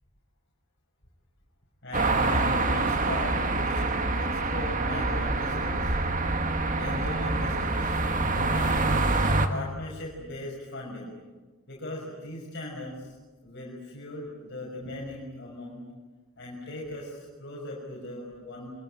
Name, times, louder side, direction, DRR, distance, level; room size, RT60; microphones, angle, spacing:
voice 1, 1.8-5.9 6.8-7.9 8.5-9.0 9.5-11.1 11.7-13.2 13.4-15.8 16.4-18.7, left 1 dB, 55° left, -3 dB, 5.9 m, -38 dB
sound 1, 1.9-9.5, right 2 dB, 35° right, 1.8 m, -26 dB
26.0 x 22.5 x 10.0 m, 1.3 s
head